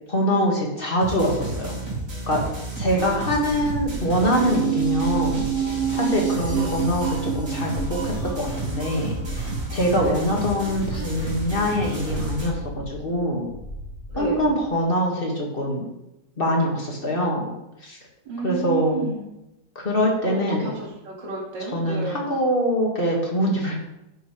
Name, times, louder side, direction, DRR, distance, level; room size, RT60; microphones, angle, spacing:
voice 1, 0.1-1.8 2.3-2.4 2.8-5.4 5.9-9.4 9.7-12.6 12.9-13.5 14.2-15.8 16.4-17.5 17.8-18.0 18.4-19.1 19.8-20.7 21.7-23.7, equal, 30° left, -1 dB, 2.0 m, -24 dB
sound 1, 1.0-12.5, right 2 dB, 55° right, 3.4 m, -32 dB
voice 2, 2.9-3.4 6.5-6.7 10.0-10.2 14.1-14.4 18.3-19.3 20.3-22.2, right 4 dB, 90° right, -2 dB, 2.7 m, -31 dB
sound 2, 3.5-14.8, left 1 dB, 65° left, 2.2 m, -37 dB
sound 3, 4.2-10.8 11.1-11.2, right 9 dB, 75° right, 3.0 m, -29 dB
10.5 x 6.9 x 3.3 m, 0.92 s
omnidirectional pair, 1.9 m